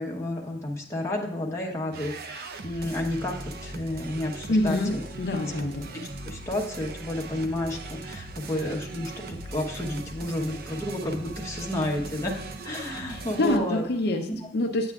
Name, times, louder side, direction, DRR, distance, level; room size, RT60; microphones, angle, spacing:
voice 1, 0.0-5.0 6.2-12.4 12.6-13.8 14.3-14.4, left 1 dB, 15° left, -2 dB, 1.0 m, -31 dB
sound 1, 1.9-13.6, right 2 dB, 55° right, 0.6 m, -39 dB
voice 2, 4.5-5.8 13.1-14.3 14.5-14.9, left 1 dB, 60° left, 3 dB, 0.6 m, -26 dB
8.8 x 8.6 x 2.4 m, 0.76 s
head